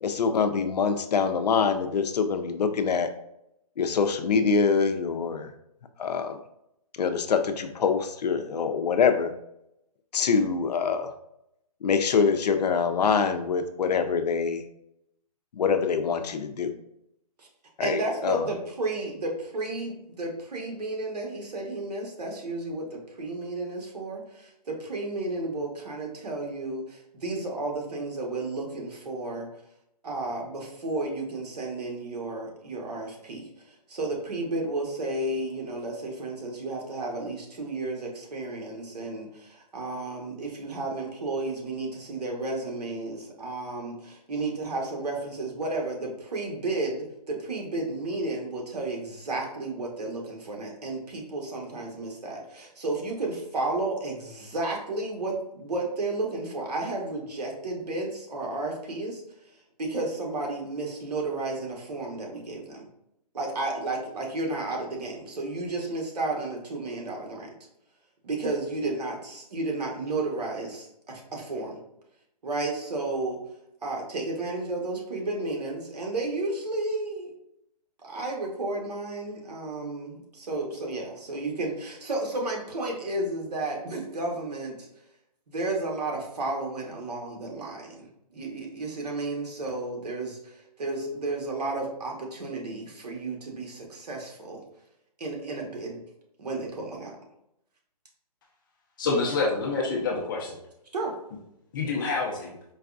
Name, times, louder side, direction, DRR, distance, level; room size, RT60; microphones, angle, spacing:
voice 1, 0.0-3.1 3.8-5.5 6.0-6.4 7.0-9.3 10.1-11.1 11.8-14.6 15.5-16.7 17.8-18.5, left 5 dB, 85° left, 8 dB, 0.5 m, -25 dB
voice 2, 17.8-29.5 30.0-59.2 59.8-62.9 63.3-67.5 68.2-70.7 71.3-71.8 72.4-73.4 73.8-77.3 78.0-84.9 85.5-94.6 95.2-96.0 96.4-97.2 100.9-101.2, right 2 dB, 80° right, 0 dB, 1.2 m, -32 dB
voice 3, 99.0-100.5 101.7-102.5, left 3 dB, 30° left, -2 dB, 0.6 m, -27 dB
4.6 x 2.3 x 2.4 m, 0.80 s
hypercardioid pair, 160°, 20 cm